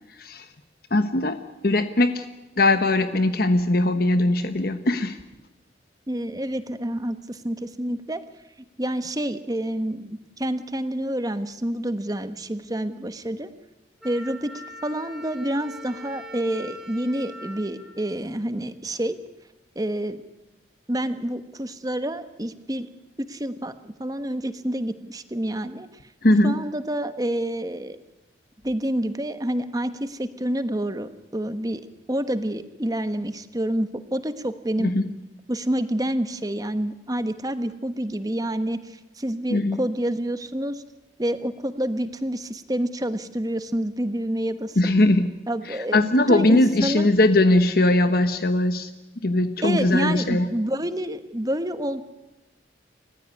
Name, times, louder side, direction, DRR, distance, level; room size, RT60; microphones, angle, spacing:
voice 1, 0.9-1.4 1.6-2.2 2.6-5.2 26.2-26.6 34.8-35.0 39.5-39.8 44.8-45.3 45.7-48.9 49.2-50.5, left 2 dB, 55° left, 9 dB, 1.1 m, -20 dB
voice 2, 6.1-8.2 8.8-13.5 14.0-14.5 14.8-19.2 19.7-20.2 20.9-22.9 23.2-25.9 26.4-28.0 28.6-31.8 32.1-34.9 35.5-40.8 41.2-44.8 45.5-47.1 49.6-52.0, right 1 dB, 20° right, 10 dB, 1.2 m, -28 dB
Wind instrument woodwind instrument, 14.0-18.8, equal, 5° right, 3.3 m, -42 dB
29.5 x 15.0 x 9.7 m, 1.0 s
head